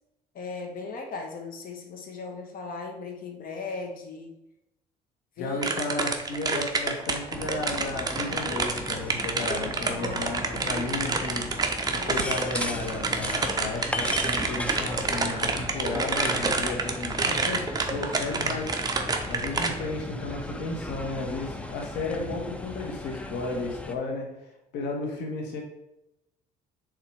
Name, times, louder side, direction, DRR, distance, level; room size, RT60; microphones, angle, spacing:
voice 1, 0.3-4.4 5.4-5.7 9.9-10.8 12.0-12.3, left 4 dB, 55° left, 3 dB, 1.5 m, -38 dB
voice 2, 5.4-11.5 11.9-25.6, left 3 dB, 85° left, 1 dB, 1.4 m, -34 dB
sound 1, 5.6-19.7, right 4 dB, 20° right, 0.8 m, -28 dB
sound 2, 7.3-23.9, left 1 dB, 5° left, 0.6 m, -36 dB
6.3 x 3.8 x 4.8 m, 0.90 s
cardioid pair, 110°, 17 cm